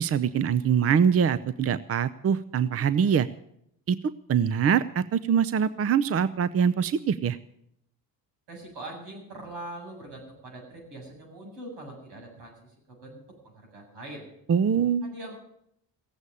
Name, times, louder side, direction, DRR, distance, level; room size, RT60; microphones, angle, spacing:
voice 1, 0.0-3.3 3.9-4.0 4.3-7.4 14.5-15.0, right 7 dB, 35° right, 16 dB, 0.6 m, -23 dB
voice 2, 8.5-12.7 13.0-13.2 13.5-14.3 15.0-15.4, right 1 dB, 75° right, 0 dB, 7.9 m, -42 dB
16.5 x 8.1 x 9.8 m, 0.75 s
supercardioid pair, 80°, 42 cm